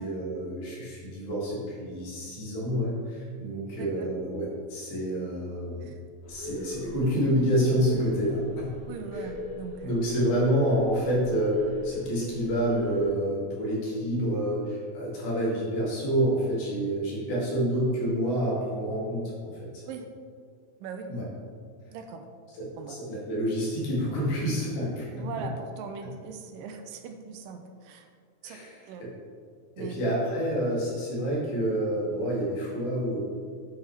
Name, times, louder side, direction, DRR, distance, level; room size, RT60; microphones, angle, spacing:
voice 1, 0.0-5.9 6.3-8.7 9.1-9.3 9.8-19.8 21.1-21.3 22.6-25.3 28.4-28.8 29.8-33.2, equal, 85° left, -6 dB, 4.3 m, -28 dB
voice 2, 3.8-4.1 5.8-6.0 8.9-10.0 19.8-20.1 20.8-21.1 21.9-22.3 22.8-23.0 25.1-28.1 28.4-28.6 28.9-29.1 29.8-29.9, right 5 dB, 80° right, 6 dB, 2.1 m, -40 dB
sound 1, 6.2-13.1, left 2 dB, 55° left, 3.2 m, -39 dB
8.9 x 8.2 x 3.2 m, 2.1 s
omnidirectional pair, 4.1 m